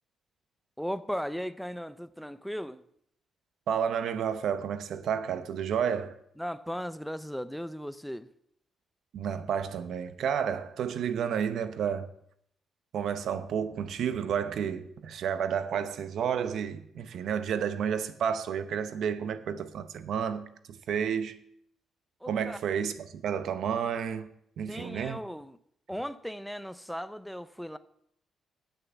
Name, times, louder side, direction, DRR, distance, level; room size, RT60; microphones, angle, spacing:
voice 1, 0.8-2.8 6.4-8.3 22.2-22.6 24.7-25.6 25.9-27.8, equal, ahead, 0.4 m, -37 dB
voice 2, 3.7-6.1 9.1-12.1 12.9-21.4 22.3-24.3 24.6-25.2, right 8 dB, 70° right, 0.7 m, -31 dB
8.4 x 6.5 x 7.1 m
cardioid pair, 105°, 0 cm